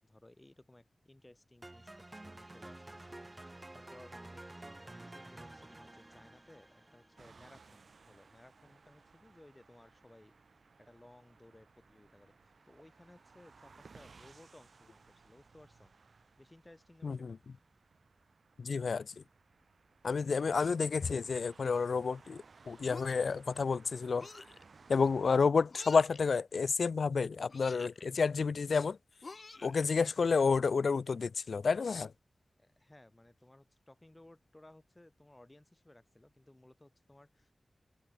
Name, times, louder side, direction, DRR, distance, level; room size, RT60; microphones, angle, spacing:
voice 1, 0.0-4.4 4.8-10.4 10.8-15.9 16.4-17.4 32.6-37.5, left 1 dB, 20° left, 7.0 m, -60 dB
sound 1, 1.6-7.7, right 2 dB, 25° right, 1.8 m, -51 dB
sound 2, 7.2-25.4, right 4 dB, 75° right, 3.6 m, -61 dB
voice 2, 17.0-17.4 18.6-19.1 20.0-24.3 24.9-29.0 29.6-32.1, left 5 dB, 80° left, 0.5 m, -30 dB
sound 3, 22.9-23.4 24.2-24.6 25.7-26.2 27.5-28.1 29.2-30.0, left 3 dB, 55° left, 1.0 m, -48 dB
wide cardioid pair, 65°, 0 cm